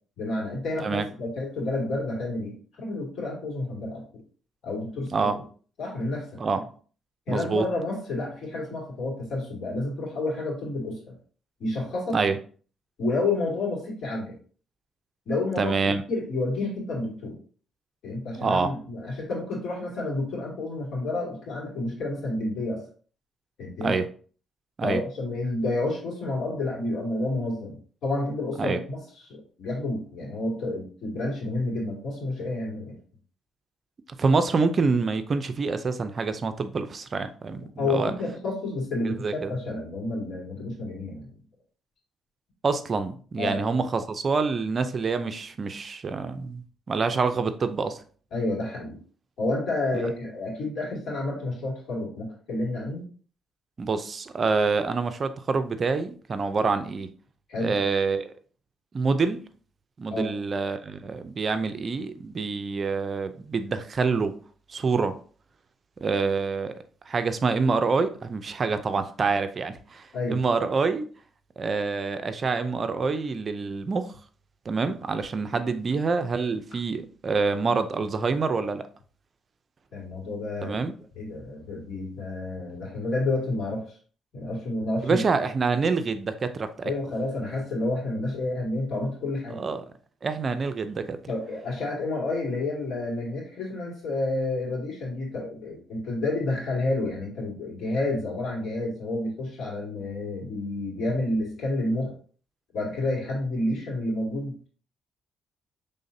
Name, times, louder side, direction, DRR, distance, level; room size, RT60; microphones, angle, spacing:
voice 1, 0.2-4.0 4.6-5.3 5.8-6.4 7.3-11.1 11.6-12.2 13.0-14.3 15.3-15.7 16.1-17.4 18.0-22.8 23.6-24.0 24.8-29.0 29.2-33.0 37.8-41.3 43.4-43.6 48.3-49.0 49.4-53.0 57.5-57.7 60.1-60.3 70.1-70.4 79.9-80.8 81.1-83.8 84.3-85.2 86.8-89.6 91.3-102.1 102.7-104.7, left 2 dB, 70° left, -3 dB, 2.4 m, -30 dB
voice 2, 7.3-7.6 12.1-12.4 15.6-16.0 18.4-18.7 23.8-24.0 24.8-25.0 28.6-28.8 34.2-38.1 39.0-39.5 42.6-48.0 49.9-50.1 53.8-57.1 57.6-58.3 58.9-59.4 60.0-64.3 64.7-65.1 66.0-66.7 67.1-71.0 71.6-74.1 74.7-78.9 80.6-80.9 85.0-86.9 89.5-89.9 90.2-91.2, right 4 dB, 40° right, 10 dB, 0.5 m, -26 dB
5.6 x 3.5 x 2.7 m, 0.42 s
cardioid pair, 90°, 0 cm